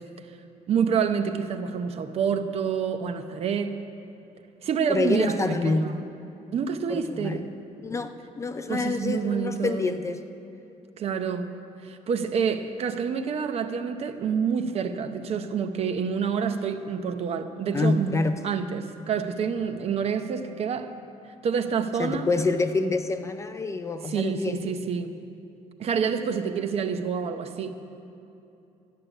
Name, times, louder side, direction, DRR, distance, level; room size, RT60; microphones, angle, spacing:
voice 1, 0.7-3.8 4.6-6.0 6.5-7.4 8.7-9.9 11.0-11.5 11.8-20.9 21.4-22.3 24.0-25.1 25.8-27.7, right 6 dB, 50° right, 8 dB, 0.7 m, -28 dB
voice 2, 4.9-6.1 6.9-7.4 7.8-10.2 17.7-18.4 22.0-24.8, left 3 dB, 20° left, 9 dB, 0.4 m, -27 dB
13.0 x 6.6 x 9.9 m, 2.9 s
cardioid pair, 155°, 14 cm